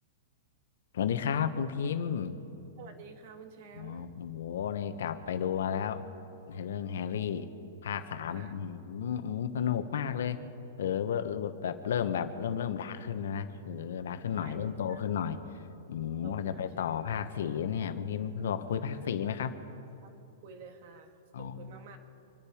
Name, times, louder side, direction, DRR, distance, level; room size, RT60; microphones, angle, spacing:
voice 1, 0.9-2.4 3.8-6.0 6.5-7.5 7.8-10.4 10.8-15.4 15.9-19.6 21.3-21.6, left 8 dB, 70° left, 9 dB, 1.2 m, -33 dB
voice 2, 2.8-4.1 8.3-8.6 14.4-15.0 16.2-16.9 18.9-19.1 20.0-20.1 20.4-22.0, right 5 dB, 45° right, 6 dB, 1.9 m, -50 dB
26.5 x 10.0 x 5.1 m, 2.9 s
hypercardioid pair, 160°, 0 cm